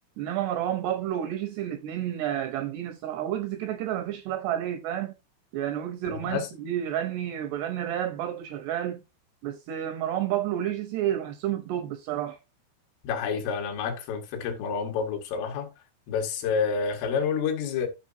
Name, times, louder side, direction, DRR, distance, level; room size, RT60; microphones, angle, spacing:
voice 1, 0.2-5.1 5.5-9.0 9.4-12.4, right 11 dB, 80° right, 2.4 m, -30 dB
voice 2, 6.1-6.5 13.0-15.7 16.1-17.9, left 6 dB, 85° left, 4.3 m, -29 dB
13.0 x 5.9 x 2.6 m
omnidirectional pair, 5.6 m